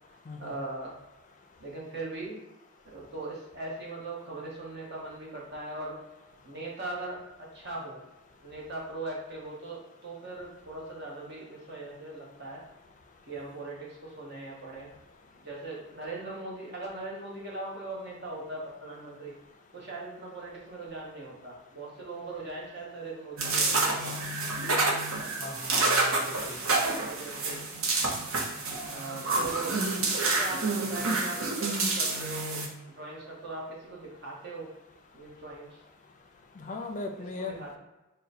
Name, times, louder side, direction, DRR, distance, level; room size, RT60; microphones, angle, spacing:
voice 1, 0.4-1.0 1.6-2.4 2.8-6.0 6.4-8.0 8.4-12.6 13.2-14.9 15.2-19.3 19.7-24.2 26.3-26.6 26.8-27.7 28.9-29.8 30.1-34.7 35.1-35.8 37.4-37.8, right 2 dB, 50° right, -3 dB, 1.0 m, -40 dB
sound 1, 23.4-32.7, right 3 dB, 70° right, 0.7 m, -28 dB
voice 2, 25.4-26.2 26.5-26.7 36.6-37.6, left 3 dB, 35° left, 4 dB, 0.4 m, -38 dB
3.9 x 2.1 x 4.1 m, 1.0 s
head